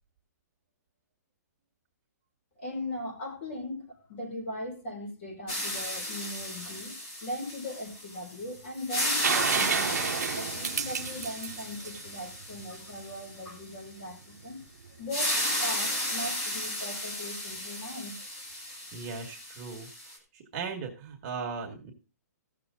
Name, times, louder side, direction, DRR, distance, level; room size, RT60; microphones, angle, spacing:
voice 1, 2.6-6.9 7.2-14.6 15.0-18.2, left 1 dB, 45° left, 1 dB, 4.9 m, -39 dB
sound 1, 5.5-8.4 8.7-13.6 15.1-20.2, left 1 dB, 25° left, 2.5 m, -34 dB
sound 2, 9.2-12.9 14.8-14.9, right 8 dB, 70° right, 0.8 m, -31 dB
voice 2, 18.9-19.9 20.3-21.9, right 5 dB, 25° right, 2 dB, 1.8 m, -37 dB
15.5 x 6.7 x 3.8 m, 0.31 s
hypercardioid pair, 165°, 9 cm